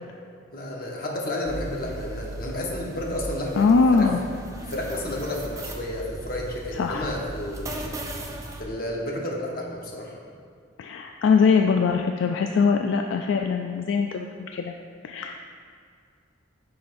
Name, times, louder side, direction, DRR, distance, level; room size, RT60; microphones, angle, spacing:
voice 1, 0.5-4.1 4.6-7.9 8.6-10.2, left 1 dB, 45° left, -1 dB, 1.0 m, -31 dB
sound 1, 1.5-8.6, right 1 dB, 15° right, 0.5 m, -37 dB
voice 2, 3.6-4.2 6.8-7.1 10.8-14.7 15.0-15.4, left 5 dB, 70° left, 4 dB, 0.3 m, -22 dB
9.6 x 5.6 x 2.6 m, 2.3 s
head